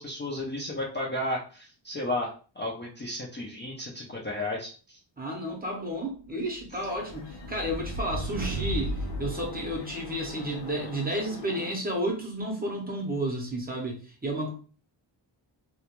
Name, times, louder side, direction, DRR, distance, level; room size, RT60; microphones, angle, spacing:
voice 1, 0.0-5.0, left 1 dB, 25° left, -4 dB, 0.4 m, -33 dB
voice 2, 5.2-14.5, right 1 dB, 20° right, 0 dB, 0.6 m, -32 dB
sound 1, 6.6-10.4, right 1 dB, 85° right, 0.5 m, -35 dB
sound 2, 6.7-11.7, left 4 dB, 65° left, 0.8 m, -44 dB
2.3 x 2.1 x 2.9 m, 0.38 s
wide cardioid pair, 165°, 46 cm